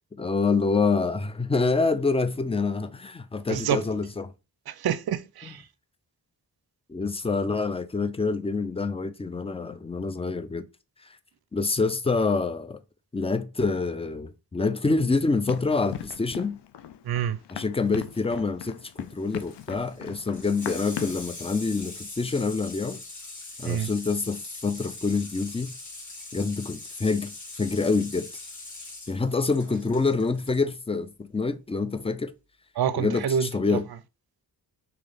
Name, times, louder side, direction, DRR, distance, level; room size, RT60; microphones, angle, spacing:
voice 1, 0.2-4.3 5.4-5.5 6.9-10.7 11.5-12.8 13.1-16.6 17.5-23.0 23.6-25.7 26.3-28.4 29.1-32.3 33.0-33.9, left 4 dB, 15° left, 0.4 m, -26 dB
voice 2, 3.5-3.8 4.7-5.6 17.1-17.4 23.6-23.9 32.8-33.8, right 8 dB, 60° right, 0.5 m, -27 dB
Run, 15.5-21.3, left 11 dB, 70° left, 0.5 m, -39 dB
Water tap faucet / Sink (filling or washing), 18.8-30.6 31.9-32.0, left 2 dB, 40° left, 1.6 m, -42 dB
3.2 x 2.8 x 3.9 m
cardioid pair, 45°, 43 cm